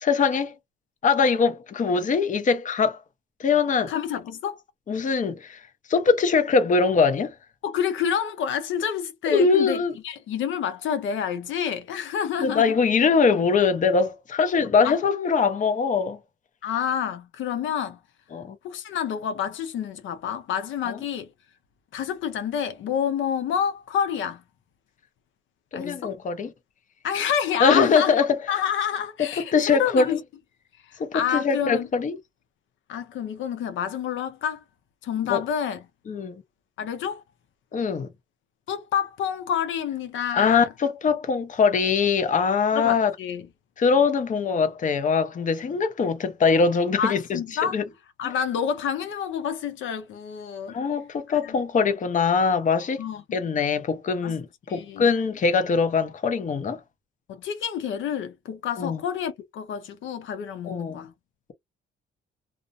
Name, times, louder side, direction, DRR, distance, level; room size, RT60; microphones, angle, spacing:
voice 1, 0.0-0.5 1.0-3.0 3.4-3.9 4.9-5.6 5.9-7.3 9.3-9.9 12.4-16.2 18.3-18.6 20.9-21.0 25.7-26.5 27.6-28.3 29.5-30.2 31.0-32.2 35.3-35.4 36.1-36.4 37.7-38.1 40.3-43.1 43.8-47.4 47.7-47.8 50.7-53.0 53.3-56.8 58.8-59.0 60.7-61.0, left 5 dB, 40° left, 0.7 m, -22 dB
voice 2, 3.9-4.6 7.6-9.8 10.0-12.7 14.8-15.0 16.6-18.0 18.6-21.3 21.9-24.4 25.7-26.1 27.0-28.1 28.5-30.2 30.8-31.9 32.9-34.6 35.0-35.8 36.8-37.2 38.7-40.7 42.7-43.5 47.0-47.8 48.2-50.8 51.3-51.6 53.0-53.4 54.2-54.4 54.7-55.1 57.3-61.1, left 8 dB, 75° left, 0.6 m, -28 dB
2.5 x 2.1 x 2.5 m
cardioid pair, 90°, 20 cm